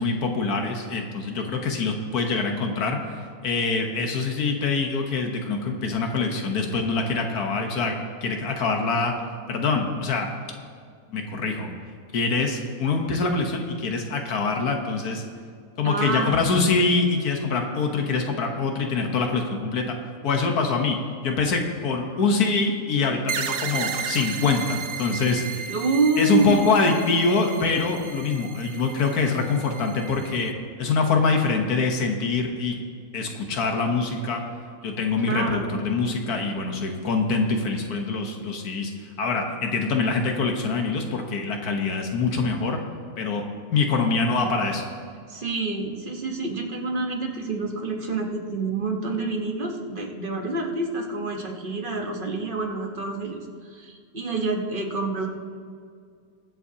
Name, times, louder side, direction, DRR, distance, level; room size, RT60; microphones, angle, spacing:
voice 1, 0.0-9.1 9.5-10.3 11.1-11.7 12.1-15.2 15.8-20.0 20.2-21.0 21.2-25.7 26.2-32.8 33.1-34.4 34.8-38.9 39.2-42.8 43.2-43.4 43.7-44.8, left 4 dB, 80° left, 3 dB, 1.6 m, -24 dB
voice 2, 15.8-16.5 25.7-26.9 35.3-35.7 45.3-55.3, right 3 dB, 40° right, 2 dB, 1.2 m, -27 dB
sound 1, 23.3-30.5, right 7 dB, 60° right, 0.8 m, -34 dB
23.0 x 7.7 x 2.8 m, 2.2 s
omnidirectional pair, 1.6 m